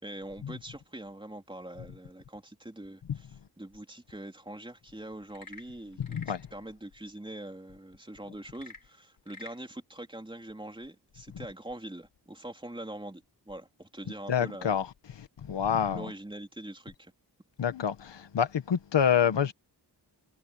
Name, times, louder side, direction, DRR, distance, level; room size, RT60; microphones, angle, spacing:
voice 1, 0.0-3.3 3.6-6.2 6.5-14.8 15.8-17.1, right 1 dB, 10° right, 3.6 m, -43 dB
Frog / Percussion / Wood, 5.2-6.5 8.5-9.6, left 3 dB, 50° left, 6.0 m, -48 dB
voice 2, 6.0-6.5 14.3-14.9 15.1-16.1 17.6-19.5, left 8 dB, 80° left, 1.3 m, -27 dB
wide cardioid pair, 135°, 42 cm